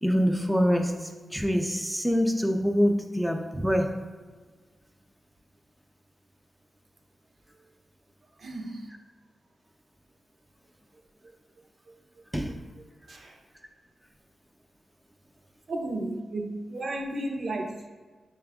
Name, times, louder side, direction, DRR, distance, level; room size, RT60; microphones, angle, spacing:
voice 1, 0.0-4.0 12.3-12.6, equal, 5° right, 0.3 m, -25 dB
voice 2, 8.4-8.9 11.9-12.3 12.8-13.4 15.7-17.9, right 1 dB, 60° right, 0.6 m, -34 dB
5.7 x 2.3 x 3.4 m
wide cardioid pair, 100°, 0 cm